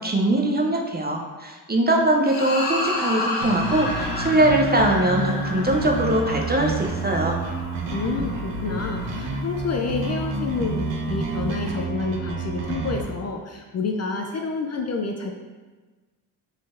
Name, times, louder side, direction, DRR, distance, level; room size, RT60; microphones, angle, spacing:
voice 1, 0.0-7.4, right 1 dB, 20° right, 1 dB, 0.5 m, -22 dB
sound 1, 2.3-8.8, left 2 dB, 60° left, 0.8 m, -31 dB
sound 2, 3.4-13.0, right 3 dB, 65° right, 0.7 m, -29 dB
voice 2, 7.9-15.3, left 4 dB, 35° left, 2 dB, 0.4 m, -28 dB
4.0 x 3.1 x 2.5 m, 1.3 s
supercardioid pair, 50°, 47 cm